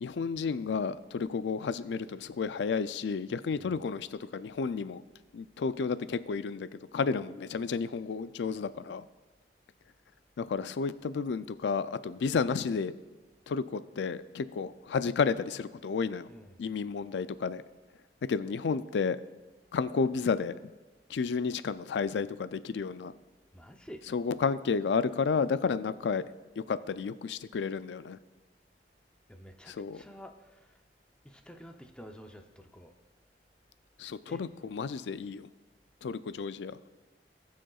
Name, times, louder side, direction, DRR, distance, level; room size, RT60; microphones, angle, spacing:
voice 1, 0.0-5.0 5.3-6.7 6.9-9.0 10.4-12.9 13.5-16.3 16.6-17.6 18.3-19.2 19.7-20.5 21.1-23.1 24.1-26.2 26.6-28.2 29.7-30.0 34.0-35.5 36.0-36.8, left 5 dB, 80° left, 14 dB, 0.4 m, -31 dB
voice 2, 16.3-16.6 23.5-24.1 29.3-30.8 31.2-32.9 34.3-34.4, equal, 5° left, 4 dB, 0.6 m, -50 dB
19.0 x 6.4 x 2.4 m, 1.2 s
head